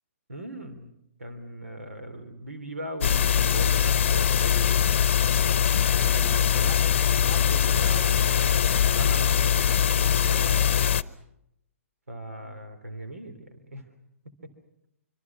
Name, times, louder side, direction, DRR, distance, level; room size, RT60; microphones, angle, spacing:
voice 1, 0.3-0.9 1.2-5.0 5.3-5.5 6.0-10.7 12.1-13.9 14.4-14.5, right 1 dB, 80° right, 8 dB, 3.0 m, -39 dB
sound 1, 3.0-11.0, left 9 dB, 55° left, 0.8 m, -22 dB
25.5 x 25.5 x 6.0 m, 0.80 s
figure-of-eight pair, 125°, 8 cm